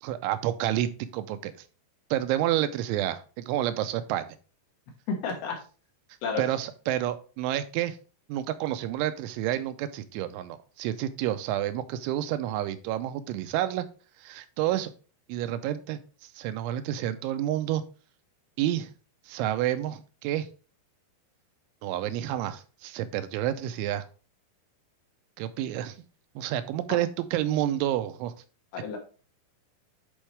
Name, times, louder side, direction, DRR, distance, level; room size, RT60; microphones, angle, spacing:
voice 1, 0.0-1.6 2.1-4.3 6.4-8.0 8.3-13.9 14.2-14.9 15.3-17.8 18.6-18.9 19.3-20.5 21.8-24.1 25.4-26.0 26.4-28.3, right 12 dB, 85° right, 11 dB, 3.0 m, -29 dB
voice 2, 5.1-5.6 6.2-6.4 28.7-29.0, left 5 dB, 65° left, 0 dB, 3.2 m, -31 dB
10.5 x 4.6 x 3.3 m, 0.37 s
omnidirectional pair, 5.5 m